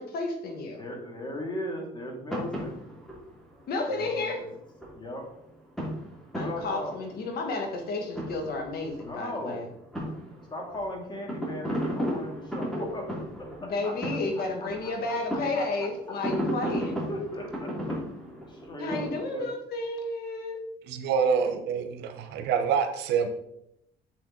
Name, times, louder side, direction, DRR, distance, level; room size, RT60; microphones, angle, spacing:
voice 1, 0.0-0.8 3.7-4.4 6.3-9.7 13.6-17.0 18.8-20.6, left 2 dB, 65° left, 4 dB, 1.8 m, -32 dB
voice 2, 0.8-2.8 3.9-4.5 4.9-5.3 6.3-7.0 9.1-9.6 10.5-13.1 13.4-15.9 17.1-18.0 18.5-19.5, left 1 dB, 25° left, 0 dB, 2.5 m, -38 dB
sound 1, 2.3-5.0 5.2-5.5 5.8-7.4 7.6-9.4 9.7-19.3, equal, 5° left, 2.7 m, -35 dB
voice 3, 20.9-23.3, right 6 dB, 85° right, 7 dB, 1.2 m, -26 dB
7.3 x 6.8 x 4.0 m, 0.77 s
cardioid pair, 110°, 17 cm